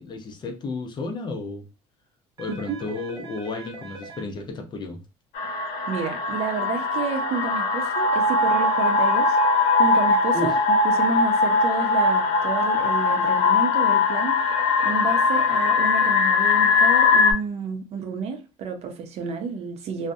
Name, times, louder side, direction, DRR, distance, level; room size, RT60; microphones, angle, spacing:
voice 1, 0.0-1.6 2.4-5.0 10.3-10.5, left 3 dB, 35° left, 0.5 m, -32 dB
sound 1, 2.4-4.2 8.4-10.2 14.4-16.2, right 4 dB, 30° right, 0.9 m, -41 dB
sound 2, 5.3-17.3, left 4 dB, 90° left, 0.4 m, -20 dB
voice 2, 5.9-9.4 9.8-10.5 10.8-14.4 14.8-20.1, right 5 dB, 55° right, 0.5 m, -30 dB
2.3 x 2.1 x 2.6 m
cardioid pair, 110°, 13 cm